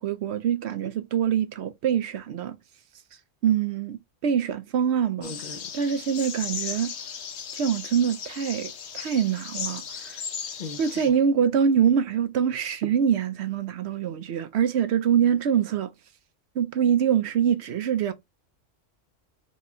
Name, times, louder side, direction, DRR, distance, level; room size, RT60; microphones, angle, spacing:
voice 1, 0.0-2.6 3.4-5.3 5.7-6.9 7.5-10.2 10.8-15.9 16.6-18.1, right 8 dB, 65° right, 0.8 m, -24 dB
sound 1, 5.2-11.1, left 7 dB, 65° left, 1.0 m, -36 dB
voice 2, 5.2-5.7 10.6-11.2, left 4 dB, 45° left, 0.6 m, -39 dB
4.2 x 3.0 x 3.5 m
omnidirectional pair, 1.3 m